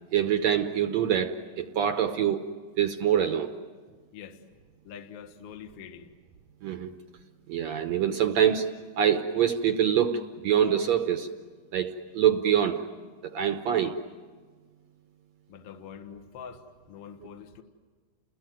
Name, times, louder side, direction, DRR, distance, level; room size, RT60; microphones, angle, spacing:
voice 1, 0.1-2.4 2.8-3.5 6.6-6.9 7.5-8.7 9.0-11.3 11.7-12.8 13.2-14.0, right 9 dB, 65° right, 7 dB, 1.8 m, -25 dB
voice 2, 4.8-6.1 15.5-17.6, left 7 dB, 55° left, 6 dB, 2.1 m, -45 dB
30.0 x 21.0 x 9.3 m, 1.5 s
omnidirectional pair, 3.9 m